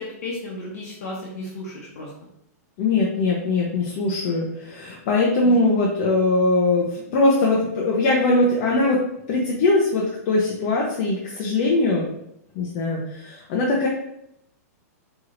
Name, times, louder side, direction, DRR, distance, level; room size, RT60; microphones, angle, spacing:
voice 1, 0.0-2.1, left 2 dB, 65° left, -3 dB, 1.0 m, -34 dB
voice 2, 2.8-12.0 12.5-13.9, left 2 dB, 35° left, -2 dB, 0.7 m, -21 dB
4.6 x 3.0 x 2.5 m, 0.78 s
supercardioid pair, 165°, 9 cm